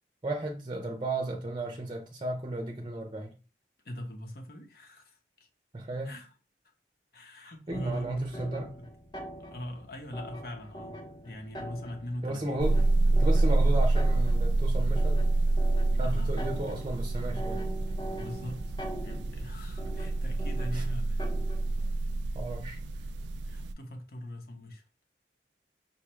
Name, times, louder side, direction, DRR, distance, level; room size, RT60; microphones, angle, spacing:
voice 1, 0.2-3.3 5.7-6.1 7.7-8.7 12.2-12.8 13.1-15.3 15.9-17.7 20.7-20.8 22.3-22.8, right 2 dB, 25° right, 0.6 m, -34 dB
voice 2, 3.8-5.5 6.0-6.3 7.1-8.5 9.4-11.0 11.2-12.9 16.0-16.4 18.2-18.7 19.0-21.3 23.4-24.8, equal, 55° left, 0.9 m, -41 dB
sound 1, 7.7-21.9, right 1 dB, 25° left, 0.8 m, -43 dB
sound 2, 12.6-23.7, right 2 dB, 85° right, 0.3 m, -27 dB
5.6 x 2.3 x 3.1 m
head